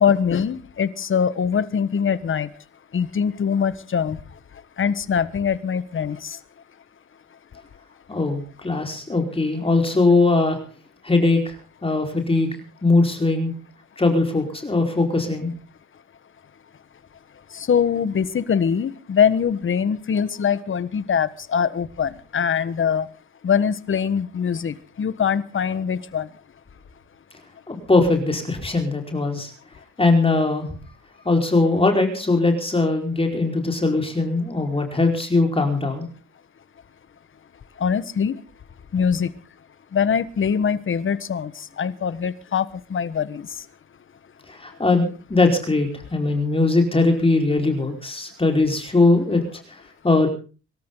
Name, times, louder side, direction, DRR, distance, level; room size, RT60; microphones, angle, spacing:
voice 1, 0.0-2.5 2.9-4.2 4.8-6.4 17.5-23.1 23.4-26.3 37.8-38.4 38.9-39.3 39.9-41.5 41.8-43.5, left 7 dB, 40° left, 15 dB, 1.3 m, -23 dB
voice 2, 8.1-10.6 11.0-11.6 11.8-12.5 12.8-13.5 14.0-15.5 27.7-29.5 30.0-30.7 31.2-36.1 44.5-49.4 49.7-50.3, left 3 dB, 20° left, 3 dB, 4.7 m, -20 dB
24.5 x 13.5 x 3.9 m, 0.35 s
cardioid pair, 90°, 30 cm